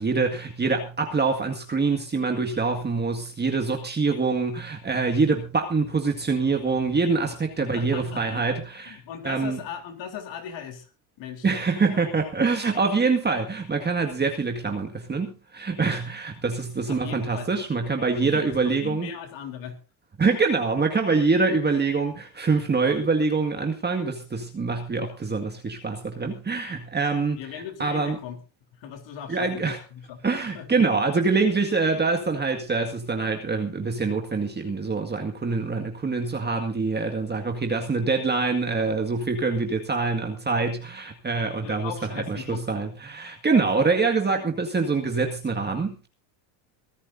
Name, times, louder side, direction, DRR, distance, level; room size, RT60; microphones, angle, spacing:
voice 1, 0.0-9.6 11.4-19.1 20.2-28.2 29.3-29.8 30.2-46.1, right 4 dB, 20° right, 2.0 m, -25 dB
voice 2, 7.3-10.9 11.2-11.5 16.9-17.5 18.2-19.8 27.4-28.4 28.8-30.2 30.5-30.8 41.6-42.6, left 8 dB, 60° left, 3.7 m, -38 dB
23.5 x 13.0 x 2.7 m
supercardioid pair, 105°, 49 cm